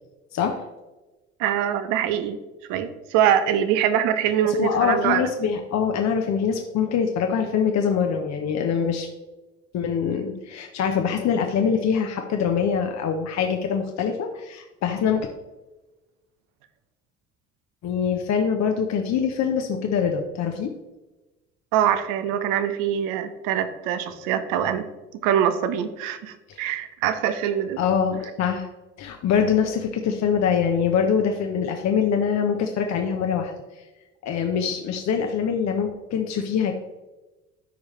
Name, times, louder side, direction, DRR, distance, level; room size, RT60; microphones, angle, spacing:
voice 1, 0.3-0.6 4.4-9.1 9.7-15.3 17.8-20.7 26.5-26.6 27.8-28.7 29.0-33.5 34.2-36.7, left 7 dB, 50° left, 4 dB, 1.0 m, -24 dB
voice 2, 1.4-2.4 2.7-5.2 21.7-24.9 25.2-27.8, right 9 dB, 70° right, 11 dB, 0.9 m, -23 dB
13.0 x 4.8 x 3.2 m, 1.1 s
hypercardioid pair, 60°, 35 cm